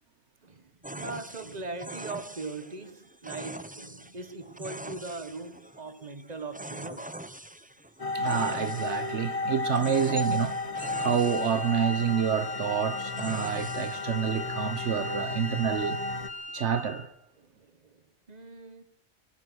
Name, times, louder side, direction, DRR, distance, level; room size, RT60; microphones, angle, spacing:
voice 1, 0.4-7.2 17.4-18.8, right 3 dB, 40° right, 1.7 m, -40 dB
sound 1, 0.8-14.4, right 1 dB, 10° right, 0.8 m, -43 dB
sound 2, 8.0-16.3, left 3 dB, 35° left, 1.1 m, -33 dB
voice 2, 8.1-10.6 11.0-16.0 16.5-17.1, right 8 dB, 85° right, 1.3 m, -28 dB
Wind instrument woodwind instrument, 10.8-17.1, left 2 dB, 75° left, 2.1 m, -40 dB
23.5 x 19.5 x 6.4 m
omnidirectional pair, 1.1 m